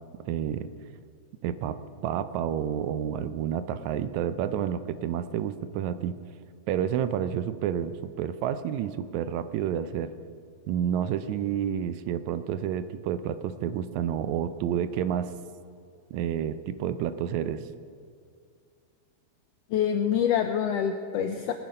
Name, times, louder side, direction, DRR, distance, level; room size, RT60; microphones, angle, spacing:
voice 1, 0.2-0.7 1.4-6.2 6.7-10.1 10.7-15.3 16.1-17.6, right 9 dB, 80° right, 12 dB, 1.8 m, -29 dB
voice 2, 19.7-21.5, left 8 dB, 85° left, 6 dB, 1.4 m, -26 dB
19.5 x 9.2 x 5.4 m, 2.2 s
omnidirectional pair, 3.5 m